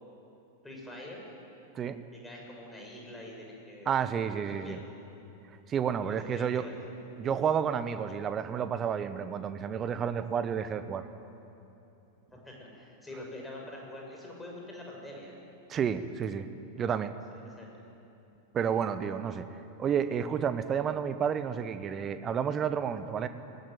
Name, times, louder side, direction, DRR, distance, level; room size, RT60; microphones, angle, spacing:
voice 1, 0.6-1.2 2.1-3.9 4.5-4.8 6.0-6.8 12.3-15.3 17.3-17.8, left 1 dB, 10° left, -1 dB, 6.1 m, -45 dB
voice 2, 3.9-4.8 5.7-6.6 7.2-11.0 15.7-16.5 16.8-17.1 18.5-19.5 19.8-23.3, right 7 dB, 25° right, 11 dB, 1.1 m, -30 dB
20.0 x 17.0 x 9.4 m, 2.8 s
figure-of-eight pair, 90°, 0 cm